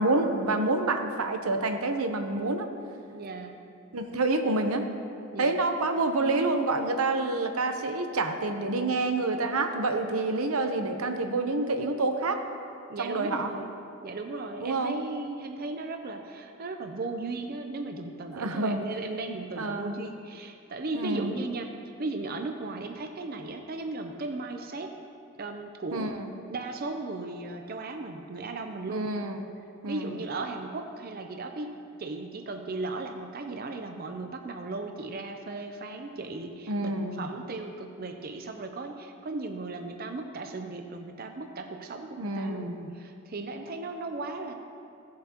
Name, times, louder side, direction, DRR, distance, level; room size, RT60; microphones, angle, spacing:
voice 1, 0.0-2.7 3.9-4.9 5.4-12.4 13.0-13.5 14.6-14.9 18.3-18.8 19.6-20.0 20.9-21.3 25.9-26.3 28.9-29.4 29.8-30.2 36.7-37.3 42.2-42.9, right 2 dB, 90° right, 6 dB, 0.8 m, -28 dB
voice 2, 3.1-3.6 5.3-5.6 12.9-13.7 14.0-24.9 25.4-26.1 26.5-29.1 29.9-44.5, right 3 dB, 45° right, 5 dB, 0.5 m, -36 dB
16.5 x 7.4 x 2.9 m, 2.6 s
head